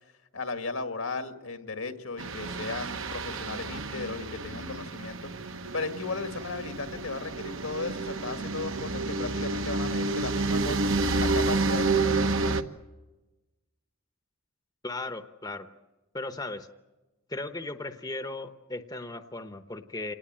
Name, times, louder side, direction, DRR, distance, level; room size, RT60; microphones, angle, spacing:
voice 1, 0.3-5.3 5.7-10.8 11.2-12.2, left 3 dB, 75° left, 7 dB, 1.9 m, -36 dB
sound 1, 2.2-12.6, right 3 dB, 65° right, 1.3 m, -29 dB
voice 2, 14.8-15.7 16.1-16.7 17.3-20.1, left 2 dB, 20° left, 8 dB, 0.9 m, -36 dB
28.0 x 19.0 x 8.9 m, 1.1 s
head